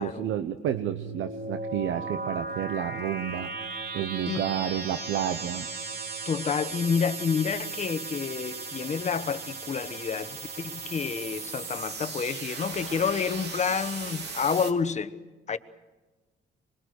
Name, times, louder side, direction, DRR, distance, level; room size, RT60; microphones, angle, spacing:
voice 1, 0.0-5.7, right 10 dB, 80° right, 0.9 m, -31 dB
sound 1, 0.7-14.7, right 3 dB, 60° right, 2.7 m, -37 dB
voice 2, 6.2-15.1 15.5-15.6, left 6 dB, 35° left, 1.1 m, -29 dB
25.5 x 22.0 x 6.5 m
cardioid pair, 100°, 20 cm